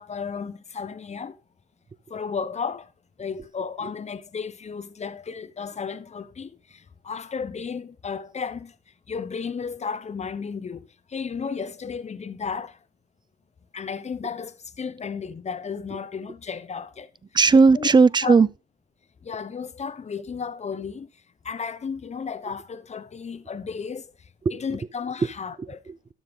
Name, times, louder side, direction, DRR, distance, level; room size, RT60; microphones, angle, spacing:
voice 1, 0.0-1.3 2.1-2.9 3.2-8.7 9.1-12.8 13.7-17.1 17.7-17.9 18.2-18.3 19.2-21.1 21.4-24.1 24.5-25.8, left 6 dB, 35° left, 1.0 m, -33 dB
voice 2, 17.3-18.5 24.5-24.6 25.2-25.3 25.6-26.1, right 4 dB, 20° right, 0.5 m, -18 dB
12.5 x 6.7 x 3.8 m
cardioid pair, 90°, 20 cm